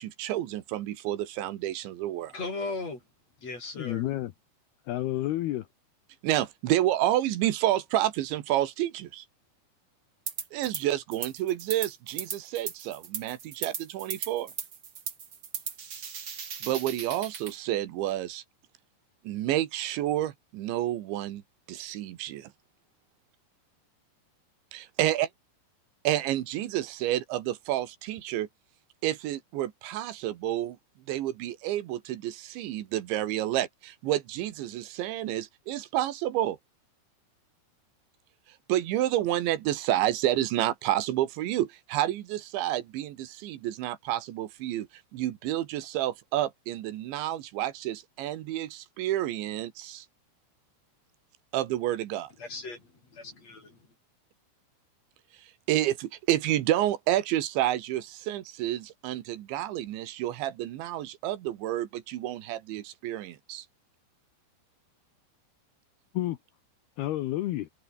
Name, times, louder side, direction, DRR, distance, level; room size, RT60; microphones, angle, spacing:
voice 1, 0.0-2.3 6.2-9.3 10.5-14.5 16.6-18.4 19.3-21.4 21.7-22.5 24.7-25.3 26.1-28.5 29.0-30.8 31.1-36.6 38.7-44.9 45.1-50.1 51.5-52.3 55.7-63.7, right 13 dB, 80° right, 3.8 m, -29 dB
voice 2, 2.3-3.0 3.4-4.0 52.4-53.8, left 3 dB, 35° left, 7.9 m, -37 dB
voice 3, 3.8-4.3 4.9-5.7 66.1-66.4 67.0-67.7, left 15 dB, 70° left, 2.7 m, -30 dB
sound 1, 10.3-10.8 11.1-17.5, right 6 dB, 65° right, 1.0 m, -37 dB
omnidirectional pair, 5.2 m